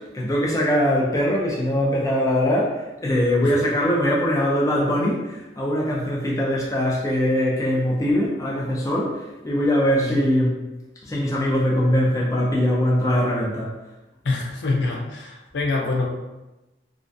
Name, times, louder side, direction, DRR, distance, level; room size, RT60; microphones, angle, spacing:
voice 1, 0.0-10.6 11.1-13.7, equal, 20° left, -3 dB, 0.4 m, -22 dB
voice 2, 14.2-16.1, left 3 dB, 85° left, -1 dB, 0.5 m, -25 dB
2.4 x 2.1 x 2.5 m, 1.0 s
head